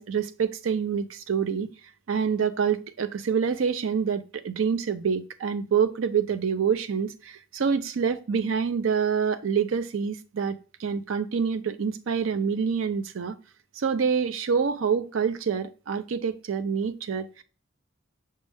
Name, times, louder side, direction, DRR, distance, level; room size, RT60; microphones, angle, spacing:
voice 1, 0.0-1.7 2.1-13.4 13.8-17.4, right 6 dB, 80° right, 0.5 m, -26 dB
6.2 x 2.2 x 3.4 m
head